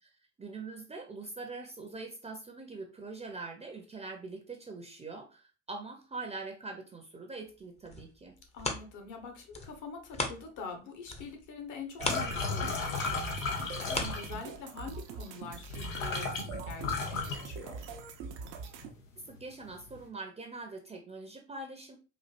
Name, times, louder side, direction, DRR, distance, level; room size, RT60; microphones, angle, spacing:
voice 1, 0.4-8.4 19.3-22.0, right 3 dB, 15° right, 3 dB, 0.7 m, -43 dB
sound 1, 7.6-10.8 11.1-14.9 15.4-15.5, left 2 dB, 15° left, 0.7 m, -39 dB
voice 2, 8.5-17.8, left 4 dB, 50° left, 5 dB, 1.1 m, -44 dB
sound 2, 12.0-14.5 15.4-15.5 15.7-18.1 18.5-18.9 19.3-20.0, left 4 dB, 85° left, 0.8 m, -35 dB
sound 3, 12.0-18.9, right 5 dB, 60° right, 0.7 m, -43 dB
4.3 x 2.6 x 2.4 m, 0.32 s
hypercardioid pair, 65°, 38 cm